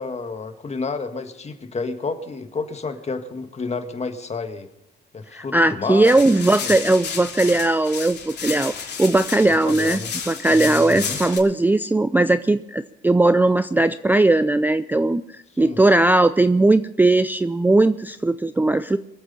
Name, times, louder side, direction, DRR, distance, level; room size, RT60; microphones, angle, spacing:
voice 1, 0.0-4.7 5.1-6.7 9.6-10.1 10.5-11.2 15.6-15.8, left 4 dB, 35° left, 7 dB, 1.7 m, -30 dB
voice 2, 5.3-10.0 10.3-19.0, right 2 dB, 10° right, 13 dB, 0.4 m, -18 dB
sound 1, 6.0-11.4, left 6 dB, 60° left, 3.2 m, -32 dB
24.0 x 8.2 x 5.5 m, 0.86 s
cardioid pair, 90°, 20 cm